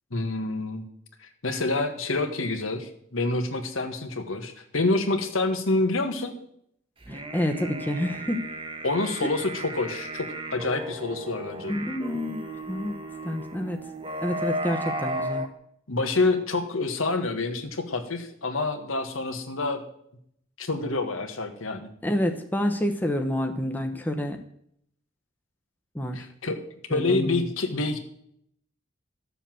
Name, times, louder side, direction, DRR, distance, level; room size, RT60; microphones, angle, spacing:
voice 1, 0.1-0.8 1.2-6.3 8.8-11.7 15.9-19.8 20.6-21.9 26.1-26.6 26.9-28.0, left 2 dB, 90° left, 6 dB, 1.6 m, -27 dB
sound 1, 7.0-15.5, right 1 dB, 25° right, 1.1 m, -35 dB
voice 2, 7.1-8.4 9.2-9.3 11.7-13.0 13.2-13.9 14.2-15.5 22.0-24.4 25.9-26.3 26.9-27.5, left 1 dB, 10° left, 4 dB, 0.9 m, -28 dB
12.5 x 6.9 x 7.7 m, 0.71 s
head